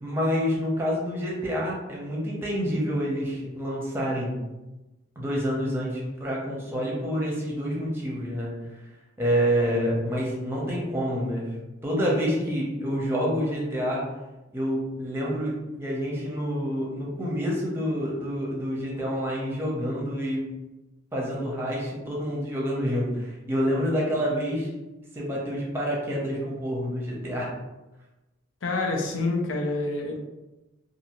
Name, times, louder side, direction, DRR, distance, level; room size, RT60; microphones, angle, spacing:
voice 1, 0.0-4.3 5.2-8.5 9.2-11.4 11.8-14.0 14.5-20.5 21.1-24.7 25.1-27.5, equal, 10° right, -4 dB, 0.7 m, -28 dB
voice 2, 28.6-30.2, left 2 dB, 85° left, 0 dB, 0.6 m, -27 dB
2.6 x 2.5 x 3.0 m, 1.0 s
head